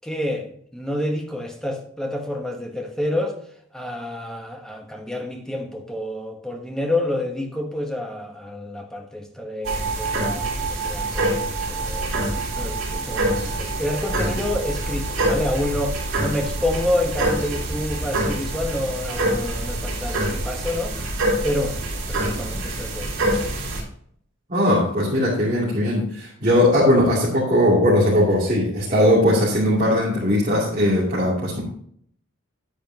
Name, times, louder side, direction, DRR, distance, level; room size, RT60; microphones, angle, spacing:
voice 1, 0.0-3.4 3.7-12.1 12.5-21.1 21.4-23.2 23.5-23.6, left 1 dB, 5° left, 2 dB, 1.1 m, -28 dB
sound 1, 9.6-23.8, right 1 dB, 65° right, 3.8 m, -25 dB
voice 2, 24.5-31.6, left 1 dB, 35° right, -8 dB, 2.7 m, -19 dB
10.0 x 8.9 x 2.9 m, 0.64 s
head